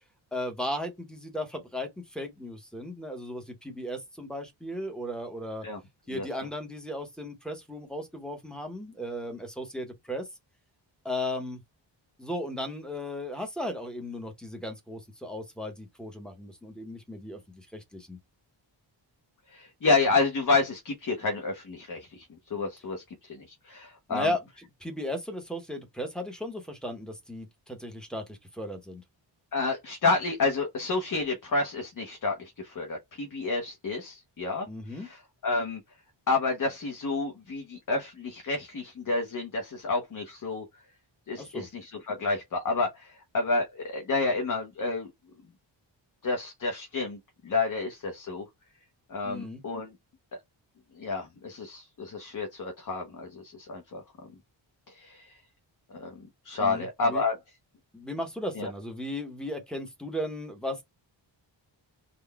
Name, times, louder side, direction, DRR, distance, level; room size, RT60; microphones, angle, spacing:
voice 1, 0.3-5.7 6.1-10.3 11.0-11.6 12.2-18.2 24.1-24.4 24.8-29.0 34.7-35.1 41.4-41.7 49.2-49.6 56.6-57.2 57.9-60.8, left 1 dB, ahead, 0.7 m, -36 dB
voice 2, 19.5-24.3 29.5-35.8 36.3-40.7 41.3-45.1 46.2-48.5 49.1-49.9 50.3-50.4 50.9-54.0 54.9-55.4 55.9-57.4 58.6-58.7, left 3 dB, 45° left, 0.8 m, -30 dB
3.9 x 2.1 x 3.4 m
wide cardioid pair, 175°, 46 cm